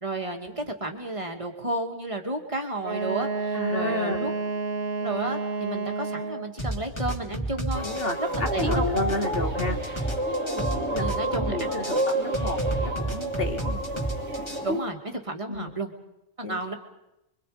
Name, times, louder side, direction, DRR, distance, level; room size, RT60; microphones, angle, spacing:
voice 1, 0.0-4.3 5.0-7.9 8.2-8.9 10.6-11.7 13.6-13.8 14.5-15.9 16.4-16.7, right 2 dB, 25° right, 3 dB, 2.6 m, -32 dB
Wind instrument woodwind instrument, 2.8-6.6, right 4 dB, 50° right, 1.3 m, -30 dB
voice 2, 3.5-4.3 7.8-10.1 10.9-13.6 15.5-15.8 16.4-16.7, left 2 dB, 55° left, 3 dB, 2.8 m, -32 dB
sound 1, 6.6-14.6, right 1 dB, 25° left, 3.7 m, -30 dB
sound 2, 7.7-14.8, right 1 dB, 75° right, 2.7 m, -30 dB
29.0 x 24.0 x 5.2 m, 0.88 s
omnidirectional pair, 1.2 m